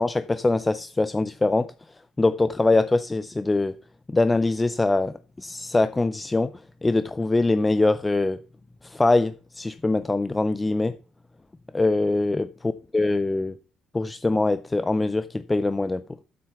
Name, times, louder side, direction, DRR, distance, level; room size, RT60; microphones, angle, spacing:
voice 1, 0.0-1.7 2.2-3.8 4.1-6.5 6.8-8.4 8.8-11.0 11.7-13.6 13.9-16.0, left 2 dB, 15° left, 0.5 m, -23 dB
8.9 x 7.7 x 5.7 m
cardioid pair, 115°, 0 cm